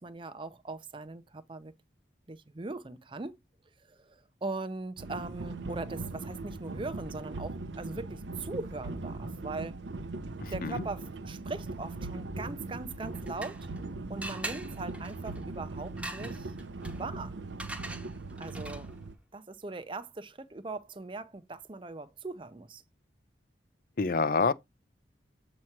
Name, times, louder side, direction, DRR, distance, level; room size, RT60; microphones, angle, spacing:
voice 1, 0.0-1.7 2.3-3.4 3.9-9.8 10.5-13.6 14.1-16.5 17.0-17.4 18.4-18.9 19.3-22.8, right 3 dB, 30° right, 0.5 m, -40 dB
sound 1, 5.0-19.1, right 2 dB, 80° right, 0.7 m, -40 dB
voice 2, 10.4-10.8 24.0-24.5, left 4 dB, 50° left, 0.5 m, -27 dB
sound 2, 12.9-13.8 14.2-19.0, right 2 dB, 5° right, 0.9 m, -43 dB
7.6 x 2.9 x 5.8 m
head